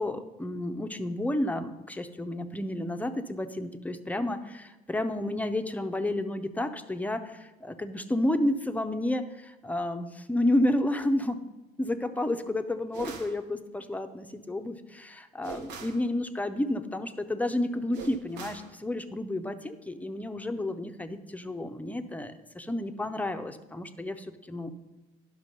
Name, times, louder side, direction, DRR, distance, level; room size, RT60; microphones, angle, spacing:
voice 1, 0.0-11.4 11.8-24.7, left 1 dB, 10° left, 8 dB, 0.6 m, -31 dB
sound 1, 12.9-13.4 15.4-16.0 17.9-18.7, right 6 dB, 90° right, 1.0 m, -41 dB
10.5 x 6.2 x 5.2 m, 1.1 s
cardioid pair, 110°, 17 cm